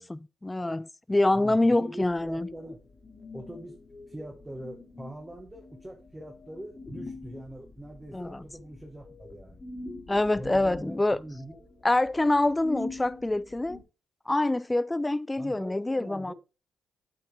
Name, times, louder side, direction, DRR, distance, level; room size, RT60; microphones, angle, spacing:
voice 1, 0.0-2.5 8.1-8.4 10.1-11.2 11.8-13.8 14.3-16.3, left 2 dB, 15° left, 0.3 m, -26 dB
voice 2, 1.3-2.8 3.3-3.8 4.1-9.6 10.4-11.6 15.4-16.3, right 1 dB, 15° right, 1.3 m, -43 dB
sound 1, 2.0-13.8, left 2 dB, 35° left, 1.9 m, -44 dB
7.7 x 4.5 x 3.4 m
supercardioid pair, 60°, 0 cm